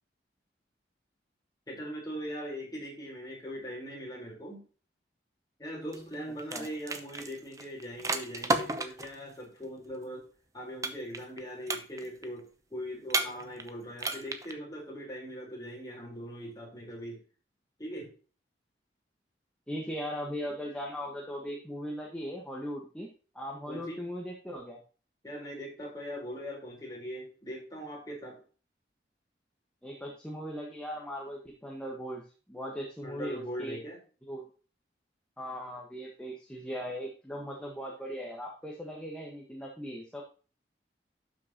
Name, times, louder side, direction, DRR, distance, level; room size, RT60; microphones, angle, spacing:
voice 1, 1.7-4.6 5.6-10.3 10.5-17.2 17.8-18.1 23.7-24.0 25.2-28.4 33.0-34.0, equal, 20° left, -2 dB, 4.3 m, -40 dB
sound 1, 5.9-6.1 6.4-9.2 10.8-11.4 11.7-12.2 13.1-13.7 14.0-14.5, right 3 dB, 20° right, 0.8 m, -32 dB
voice 2, 19.7-23.1 23.3-24.8 29.8-32.2 32.5-33.8 34.3-34.5 35.4-40.2, equal, 5° left, -2 dB, 1.5 m, -38 dB
12.0 x 6.4 x 3.0 m, 0.37 s
head